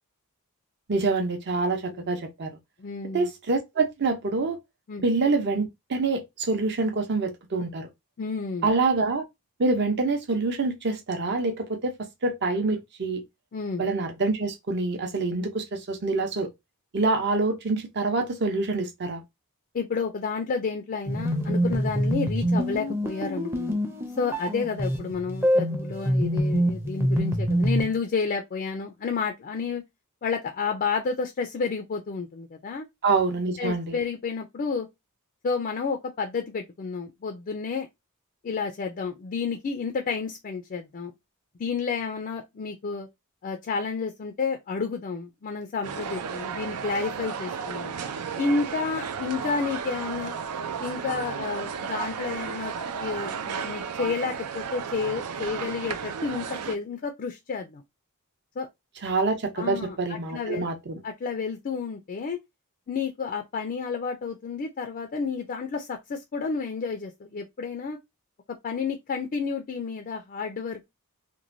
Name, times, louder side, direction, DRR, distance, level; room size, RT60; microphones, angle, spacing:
voice 1, 0.9-2.5 3.1-4.6 5.0-7.9 8.6-9.2 9.6-13.2 13.8-16.5 16.9-19.2 33.0-34.0 59.0-61.0, right 3 dB, 50° right, 0.7 m, -26 dB
voice 2, 2.8-3.3 4.9-5.0 8.2-8.7 13.5-13.8 19.7-23.8 24.2-29.8 30.2-32.9 33.6-34.9 35.4-37.9 38.4-41.1 41.6-43.1 43.4-47.9 48.4-50.3 50.8-52.7 53.0-57.8 58.6-58.7 59.6-60.7 61.0-62.4 62.9-68.0 68.6-70.8, left 5 dB, 40° left, 0.4 m, -30 dB
sound 1, 21.1-27.9, equal, 10° right, 0.5 m, -25 dB
sound 2, 45.8-56.8, right 6 dB, 90° right, 0.4 m, -33 dB
3.0 x 2.2 x 2.5 m
head